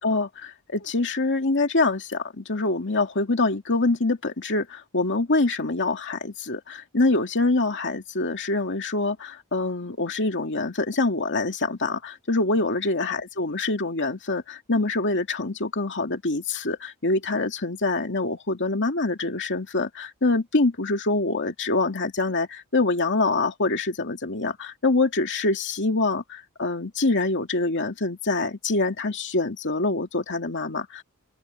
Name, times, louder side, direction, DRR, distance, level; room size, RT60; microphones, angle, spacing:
voice 1, 0.0-31.0, left 2 dB, 55° left, 2.4 m, -25 dB
open air
head